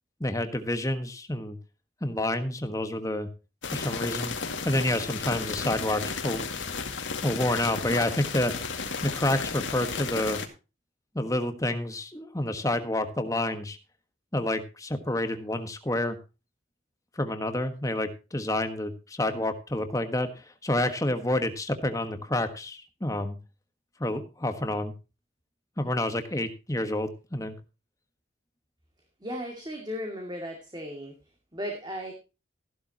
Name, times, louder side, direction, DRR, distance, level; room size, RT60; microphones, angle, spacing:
voice 1, 0.2-1.6 2.0-3.3 3.7-4.3 4.6-6.4 7.2-8.5 9.0-10.4 11.1-13.8 14.3-16.2 17.2-23.4 24.0-24.9 25.8-27.5, left 1 dB, 15° left, 8 dB, 1.5 m, -29 dB
sound 1, 3.6-10.5, left 5 dB, 80° left, 2.1 m, -33 dB
voice 2, 29.2-31.1 31.5-32.1, equal, 25° right, 2 dB, 2.4 m, -36 dB
15.0 x 12.0 x 2.9 m, 0.30 s
head